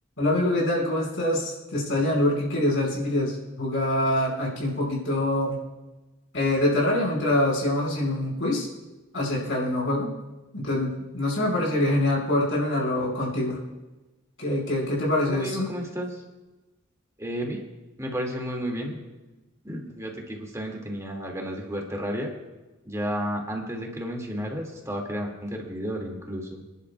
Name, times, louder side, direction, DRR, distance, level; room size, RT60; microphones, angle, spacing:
voice 1, 0.2-5.6 6.3-8.7 9.1-10.1 10.5-13.6 14.4-15.7, left 1 dB, 65° left, -3 dB, 5.2 m, -25 dB
voice 2, 15.2-16.2 17.2-17.6 18.0-19.0 19.6-22.3 22.8-26.6, equal, 15° right, 0 dB, 2.3 m, -32 dB
27.5 x 11.0 x 2.4 m, 1.1 s
head